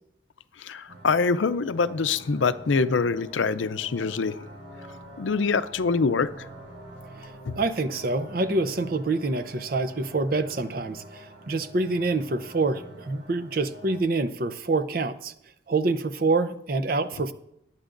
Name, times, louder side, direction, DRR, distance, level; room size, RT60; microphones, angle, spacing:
voice 1, 0.6-4.4 5.2-6.5 7.5-7.6, left 4 dB, 90° left, 0.5 m, -25 dB
sound 1, 0.9-14.0, right 1 dB, 75° right, 4.8 m, -46 dB
voice 2, 7.2-15.3 15.7-17.3, right 3 dB, 50° right, 0.6 m, -26 dB
19.5 x 9.0 x 2.6 m
head